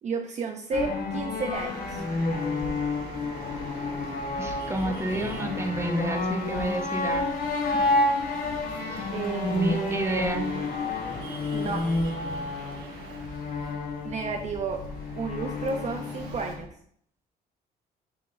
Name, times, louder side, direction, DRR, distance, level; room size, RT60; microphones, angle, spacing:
voice 1, 0.0-2.0 9.1-10.2 11.5-11.9 14.0-14.8 15.2-16.7, right 4 dB, 45° right, 4 dB, 0.6 m, -32 dB
sound 1, 0.7-16.6, left 3 dB, 60° left, 1.1 m, -30 dB
Traffic noise roadway noise, 1.5-16.5, right 4 dB, 85° right, 1.4 m, -44 dB
voice 2, 4.4-7.3 8.9-9.0 9.4-10.5, right 2 dB, 15° right, 3 dB, 0.9 m, -29 dB
10.0 x 3.7 x 2.6 m, 0.65 s
cardioid pair, 110°, 17 cm